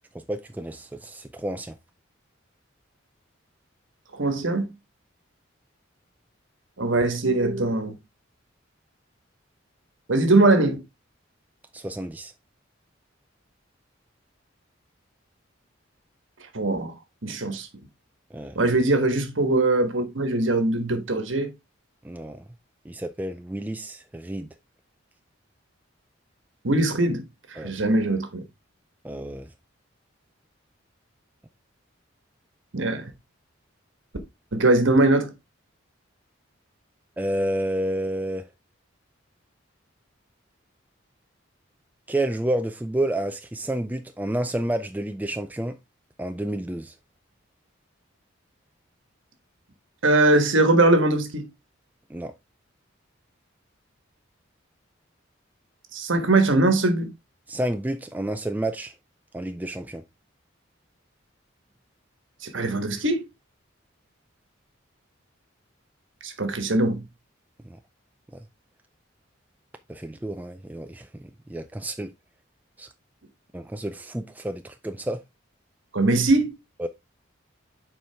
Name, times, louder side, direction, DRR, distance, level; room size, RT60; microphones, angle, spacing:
voice 1, 0.1-1.7 11.7-12.3 18.3-18.6 22.0-22.4 22.9-24.5 27.6-27.7 29.0-29.5 37.2-38.4 42.1-45.8 46.2-46.9 52.1-52.3 57.5-58.9 59.3-60.0 67.6-67.8 68.3-68.4 69.9-72.1 72.8-72.9 73.5-75.2 76.8-76.9, right 1 dB, 10° right, 0.4 m, -30 dB
voice 2, 4.1-4.7 6.8-8.0 10.1-10.8 16.5-16.9 17.2-17.7 18.5-21.5 26.6-27.2 27.5-28.4 32.7-33.1 34.5-35.3 50.0-51.5 55.9-57.1 62.4-63.2 66.2-67.1 75.9-76.5, right 2 dB, 75° right, 1.3 m, -21 dB
7.2 x 4.5 x 3.4 m
head